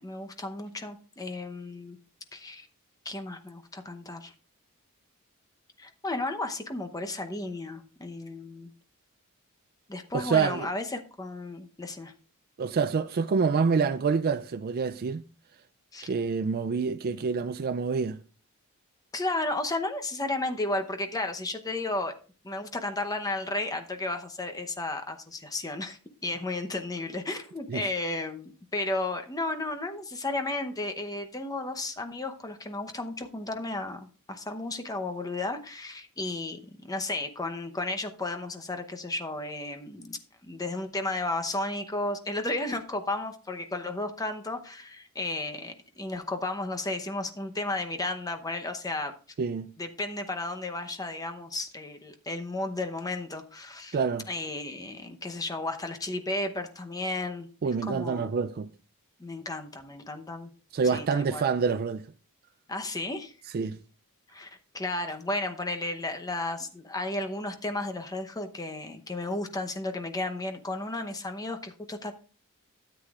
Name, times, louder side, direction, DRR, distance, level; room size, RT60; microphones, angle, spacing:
voice 1, 0.0-2.0 2.3-2.7 3.0-4.3 5.8-8.7 9.9-12.1 15.9-16.1 19.1-22.1 22.4-49.1 49.8-54.0 54.3-57.5 57.8-58.3 59.2-60.5 60.8-61.4 62.7-63.3 64.3-72.1, left 2 dB, 15° left, 0.8 m, -33 dB
voice 2, 10.1-10.7 12.6-15.2 16.0-18.2 27.7-27.8 49.4-49.7 53.9-54.3 57.6-58.7 60.7-62.0 63.5-63.8, right 5 dB, 45° right, 0.4 m, -27 dB
13.0 x 8.2 x 2.4 m
head